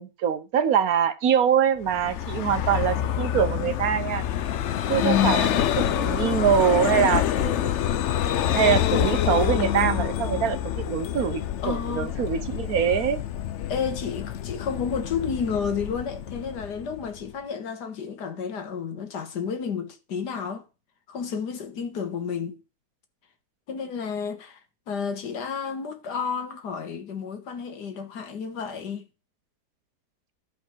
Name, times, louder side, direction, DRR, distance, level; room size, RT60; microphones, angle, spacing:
voice 1, 0.0-4.2 4.9-7.9 8.5-13.2, right 8 dB, 65° right, 1.3 m, -24 dB
Vehicle, 1.8-17.3, left 10 dB, 65° left, 0.7 m, -27 dB
voice 2, 5.0-5.4 11.6-12.2 13.7-20.7 21.1-22.5 23.7-24.6 24.9-29.1, left 6 dB, 85° left, 1.9 m, -30 dB
11.5 x 5.1 x 6.1 m
omnidirectional pair, 1.7 m